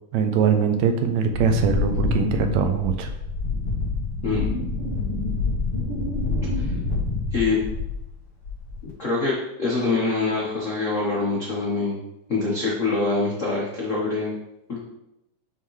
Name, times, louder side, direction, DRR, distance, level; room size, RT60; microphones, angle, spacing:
voice 1, 0.1-3.1, right 7 dB, 80° right, 7 dB, 1.8 m, -22 dB
Wind, 1.3-8.1 8.4-8.9, left 3 dB, 55° left, 2.5 m, -27 dB
voice 2, 4.2-4.5 6.6-6.7 7.3-7.6 8.8-12.0 12.3-14.3 14.7-14.8, left 3 dB, 80° left, -5 dB, 0.6 m, -25 dB
9.5 x 3.8 x 3.1 m, 0.85 s
omnidirectional pair, 3.3 m